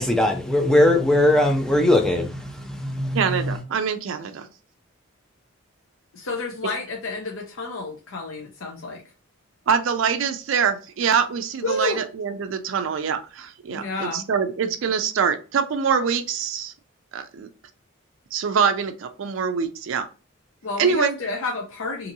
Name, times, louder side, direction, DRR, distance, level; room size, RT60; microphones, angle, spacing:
voice 1, 0.0-3.6, left 1 dB, 5° left, 0.4 m, -20 dB
voice 2, 3.1-4.5 9.7-16.7 17.1-17.5 18.3-20.1 20.8-21.2, right 6 dB, 65° right, 0.4 m, -24 dB
voice 3, 6.1-9.0 11.6-12.0 13.7-14.2 20.6-22.1, left 3 dB, 65° left, 0.6 m, -30 dB
2.7 x 2.6 x 2.6 m
head